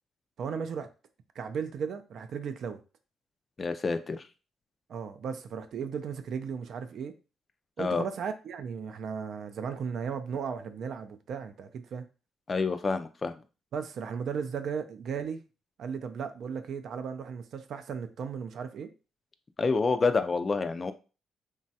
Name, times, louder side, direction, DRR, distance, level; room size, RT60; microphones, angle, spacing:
voice 1, 0.4-0.9 1.4-2.8 4.9-7.1 7.8-12.0 13.7-15.4 15.8-18.9, right 6 dB, 65° right, 0.4 m, -36 dB
voice 2, 3.6-4.2 7.8-8.0 12.5-13.3 19.6-20.9, left 4 dB, 30° left, 0.3 m, -28 dB
3.0 x 2.2 x 2.7 m
cardioid pair, 90°, 0 cm